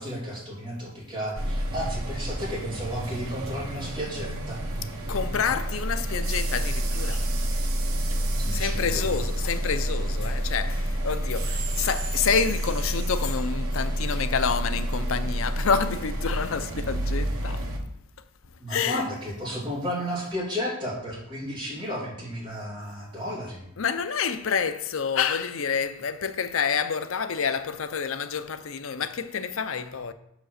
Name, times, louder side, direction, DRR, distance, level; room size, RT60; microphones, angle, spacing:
voice 1, 0.0-4.6 8.4-9.1 18.6-23.7, equal, 20° right, 3.0 m, -33 dB
sound 1, 1.3-17.8, right 1 dB, 75° right, 1.4 m, -29 dB
voice 2, 5.1-7.3 8.5-17.7 18.7-19.1 23.8-30.1, left 6 dB, 65° left, 0.5 m, -28 dB
6.4 x 5.0 x 6.5 m
head